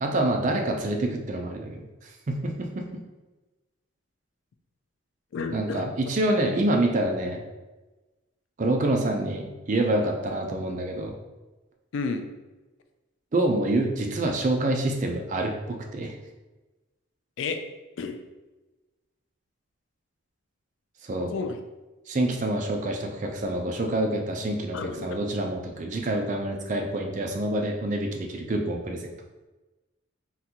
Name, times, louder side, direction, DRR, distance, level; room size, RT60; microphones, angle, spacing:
voice 1, 0.0-2.9 5.5-7.4 8.6-11.2 13.3-16.1 21.0-21.3 22.1-29.1, right 1 dB, 35° right, 2 dB, 0.4 m, -27 dB
voice 2, 5.3-5.9 6.4-6.6 11.9-12.2 17.4-17.6 18.0-18.2 21.3-21.6 24.7-25.1, left 4 dB, 65° left, 7 dB, 0.3 m, -31 dB
3.8 x 2.2 x 2.8 m, 1.1 s
head